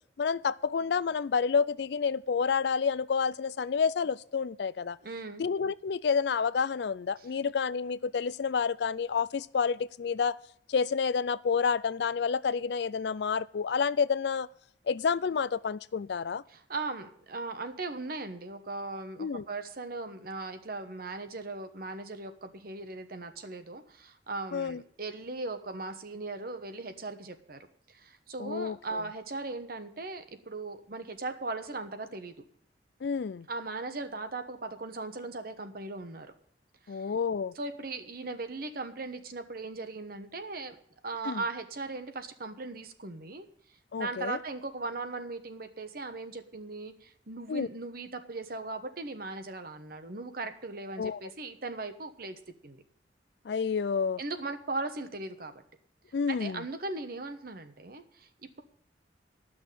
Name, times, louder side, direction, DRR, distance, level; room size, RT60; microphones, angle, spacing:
voice 1, 0.2-5.0 5.4-10.4 10.7-14.5 14.9-16.4 19.2-19.4 24.5-24.8 28.4-28.8 33.0-33.5 36.9-37.5 41.2-41.4 43.9-44.4 47.5-47.7 51.0-51.2 53.5-54.2 56.1-56.6, left 6 dB, 65° left, 0.4 m, -29 dB
voice 2, 5.0-5.4 7.2-7.3 16.5-32.4 33.5-36.3 36.9-37.0 37.5-40.8 41.0-43.5 44.0-52.8 54.2-55.5 56.3-58.3, right 3 dB, 55° right, 1.1 m, -38 dB
12.5 x 6.3 x 9.1 m
head